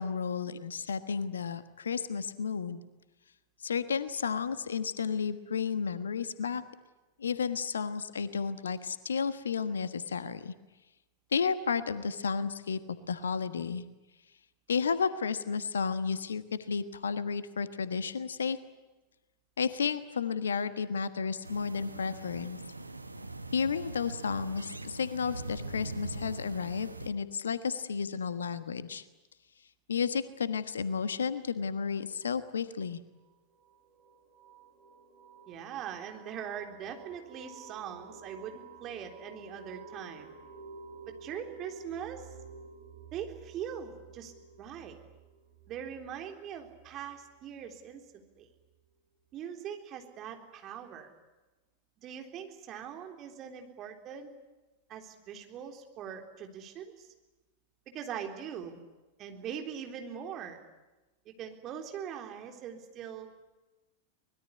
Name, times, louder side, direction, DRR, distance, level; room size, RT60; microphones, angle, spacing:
voice 1, 0.0-2.8 3.6-6.6 7.2-10.5 11.3-13.8 14.7-18.6 19.6-22.6 23.5-29.0 29.9-33.0, left 6 dB, 70° left, 13 dB, 1.3 m, -32 dB
sound 1, 21.4-27.1, right 2 dB, 85° right, 1.2 m, -42 dB
sound 2, 33.1-47.6, right 4 dB, 55° right, 6.7 m, -51 dB
voice 2, 35.5-40.3 41.0-42.3 43.1-44.3 44.6-45.0 45.7-48.5 49.3-51.1 52.0-54.3 54.9-57.1 57.9-58.8 59.2-60.6 61.4-63.3, right 8 dB, 35° right, 4 dB, 3.7 m, -42 dB
24.0 x 21.0 x 9.7 m, 1.1 s
figure-of-eight pair, 90°, 0 cm